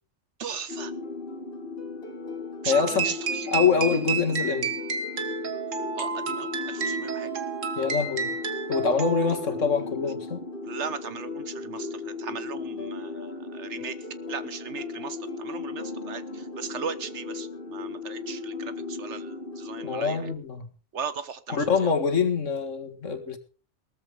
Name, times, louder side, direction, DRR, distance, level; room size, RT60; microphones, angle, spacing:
voice 1, 0.4-0.9 2.6-3.6 5.9-7.3 9.3-9.4 10.6-14.0 14.3-20.2 20.9-21.9, right 6 dB, 65° right, 14 dB, 1.4 m, -37 dB
sound 1, 0.7-20.3, left 4 dB, 50° left, 2.0 m, -36 dB
voice 2, 2.7-3.1 3.5-4.7 7.8-8.3 8.7-10.4 19.8-20.7 21.5-23.4, left 5 dB, 75° left, 6 dB, 2.2 m, -25 dB
sound 2, 2.7-9.5, right 6 dB, 85° right, 1.9 m, -31 dB
18.5 x 14.0 x 3.6 m, 0.38 s
omnidirectional pair, 1.3 m